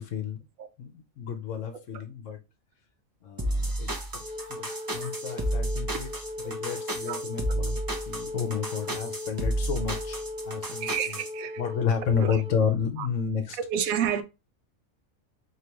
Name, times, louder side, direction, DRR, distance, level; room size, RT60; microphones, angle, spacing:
voice 1, 0.0-0.4 0.8-2.4 3.2-4.2 4.5-6.1 6.4-7.8 8.1-11.2 11.6-13.6, left 7 dB, 65° left, 1.1 m, -31 dB
sound 1, 3.4-11.3, right 1 dB, 25° right, 0.5 m, -31 dB
Wind instrument woodwind instrument, 4.2-12.6, left 2 dB, 45° right, 0.9 m, -38 dB
voice 2, 10.8-11.6 12.2-12.4 13.0-13.1 13.7-14.2, right 9 dB, 85° right, 1.1 m, -30 dB
4.8 x 3.0 x 2.9 m
omnidirectional pair, 1.4 m